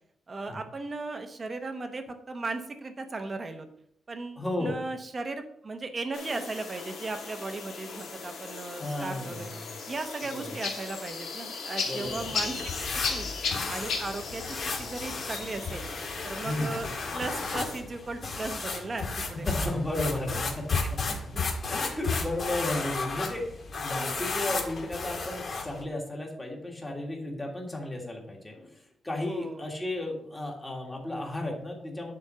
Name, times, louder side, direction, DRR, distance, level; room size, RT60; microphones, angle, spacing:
voice 1, 0.3-3.7 4.1-9.5 9.9-13.3 13.7-15.9 16.2-16.9 17.1-19.5 20.8-21.4 29.3-29.7, right 3 dB, 25° right, 7 dB, 1.0 m, -37 dB
voice 2, 4.4-4.7 8.8-9.7 10.2-10.6 11.8-12.6 16.4-16.8 19.5-20.6 21.7-32.1, left 1 dB, 10° left, -1 dB, 1.9 m, -34 dB
sound 1, 6.1-17.8, left 4 dB, 70° left, 2.6 m, -37 dB
sound 2, 12.0-25.8, left 4 dB, 40° left, 1.9 m, -34 dB
10.5 x 4.5 x 5.5 m, 0.69 s
wide cardioid pair, 180°, 0 cm